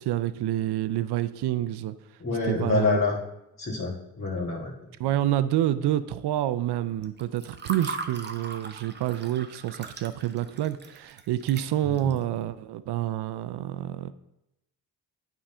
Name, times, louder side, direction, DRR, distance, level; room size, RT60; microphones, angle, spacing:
voice 1, 0.0-1.9 2.5-3.0 5.0-14.1, right 13 dB, 85° right, 14 dB, 0.5 m, -28 dB
voice 2, 2.2-3.2 3.6-4.9 11.8-12.1, left 3 dB, 30° left, -7 dB, 1.8 m, -27 dB
Water / Fill (with liquid), 7.0-12.2, right 4 dB, 25° right, 0.8 m, -39 dB
8.8 x 3.8 x 5.4 m, 0.87 s
cardioid pair, 105°, 39 cm